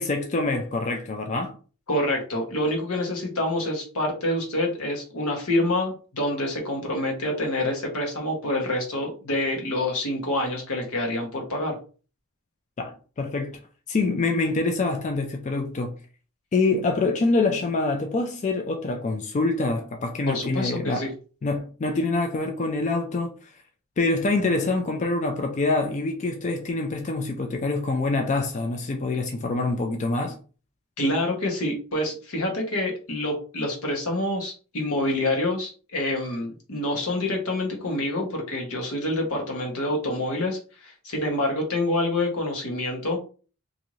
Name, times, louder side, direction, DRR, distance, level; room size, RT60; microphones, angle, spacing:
voice 1, 0.0-1.5 12.8-13.6 13.9-16.0 16.5-21.1 21.4-23.3 24.0-30.4, left 3 dB, 35° left, 0.3 m, -25 dB
voice 2, 1.9-11.8 20.3-21.1 31.0-43.2, left 1 dB, 85° left, 1.1 m, -27 dB
2.6 x 2.5 x 3.0 m
head